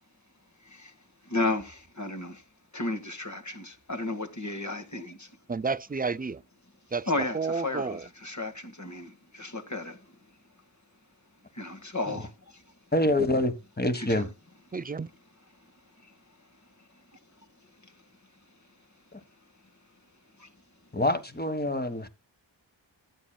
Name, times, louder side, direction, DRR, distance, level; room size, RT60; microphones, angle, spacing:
voice 1, 0.6-0.9 1.2-2.4 2.7-5.4 7.1-10.1 11.5-12.7 14.0-14.3 15.6-15.7 16.0-16.1 16.8-17.0 20.4-20.5, left 2 dB, 40° left, 1.9 m, -34 dB
voice 2, 5.5-6.4 6.9-8.1 14.7-15.1, right 4 dB, 20° right, 0.4 m, -31 dB
voice 3, 12.9-14.3 19.1-19.2 20.9-22.1, left 1 dB, 20° left, 1.5 m, -26 dB
14.0 x 8.8 x 2.3 m
wide cardioid pair, 45°, 44 cm